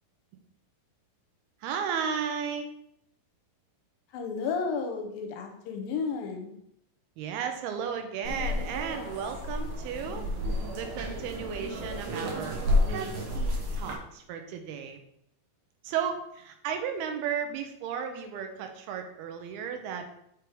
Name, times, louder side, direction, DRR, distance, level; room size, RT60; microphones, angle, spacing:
voice 1, 1.6-2.7 7.2-10.3 10.7-12.6 12.9-13.1 13.3-15.0 15.8-20.1, right 7 dB, 85° right, 6 dB, 2.7 m, -34 dB
voice 2, 4.1-6.5, left 5 dB, 75° left, 4 dB, 2.4 m, -32 dB
sound 1, 8.2-13.9, left 1 dB, 70° right, 1.2 m, -31 dB
6.1 x 5.2 x 4.6 m, 0.76 s
omnidirectional pair, 4.5 m